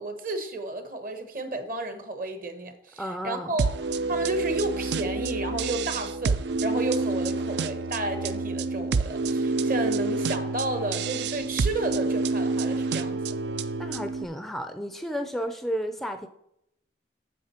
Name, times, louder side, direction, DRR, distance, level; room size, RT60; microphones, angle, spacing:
voice 1, 0.0-3.7 4.1-13.2, right 2 dB, 50° right, 8 dB, 1.2 m, -32 dB
voice 2, 3.0-3.6 13.8-16.3, equal, ahead, 7 dB, 0.4 m, -32 dB
sound 1, 3.6-14.2, right 3 dB, 70° right, 0.4 m, -28 dB
8.4 x 6.2 x 4.4 m, 0.78 s
head